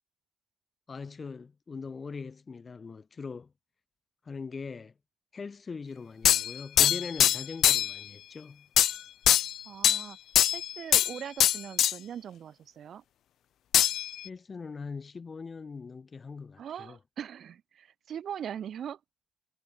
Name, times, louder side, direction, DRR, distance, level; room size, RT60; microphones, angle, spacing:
voice 1, 0.9-3.5 4.2-4.9 5.3-8.7 14.2-17.0, left 5 dB, 40° left, 1.1 m, -41 dB
sound 1, 6.2-8.0 8.8-9.0 9.3-10.0 10.4-11.1 11.4-11.9 13.7-14.3, left 11 dB, 80° left, 0.4 m, -23 dB
voice 2, 9.6-10.2 10.5-13.0 16.6-19.0, right 9 dB, 65° right, 3.2 m, -41 dB
cardioid pair, 85°, 0 cm